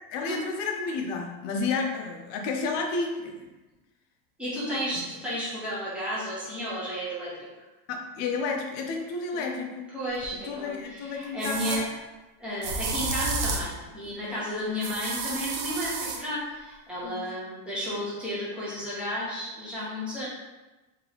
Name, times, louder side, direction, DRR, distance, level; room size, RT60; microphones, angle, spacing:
voice 1, 0.0-3.5 7.9-9.9 10.4-11.8 17.0-17.3, left 4 dB, 40° left, 2 dB, 0.5 m, -31 dB
voice 2, 4.4-7.6 9.3-9.4 9.9-11.8 12.4-20.3, equal, 5° right, -8 dB, 0.5 m, -33 dB
sound 1, 10.2-10.3 11.4-11.8 12.6-13.7 14.8-16.2, right 4 dB, 50° right, 0.5 m, -31 dB
2.9 x 2.8 x 3.9 m, 1.1 s
supercardioid pair, 170°, 46 cm